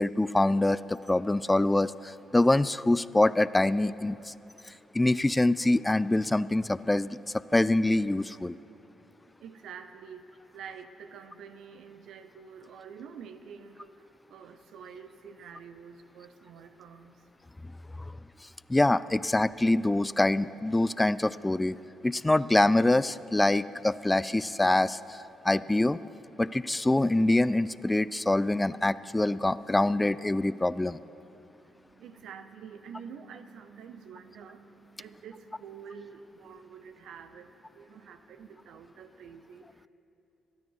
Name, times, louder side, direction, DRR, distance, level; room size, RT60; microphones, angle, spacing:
voice 1, 0.0-4.3 4.9-8.6 18.7-21.7 22.0-26.0 26.4-31.0, left 2 dB, 15° left, 17 dB, 0.4 m, -25 dB
voice 2, 9.4-17.3 31.7-39.9, right 6 dB, 70° right, 10 dB, 0.7 m, -47 dB
24.0 x 9.5 x 4.7 m, 3.0 s
hypercardioid pair, 45°, 0 cm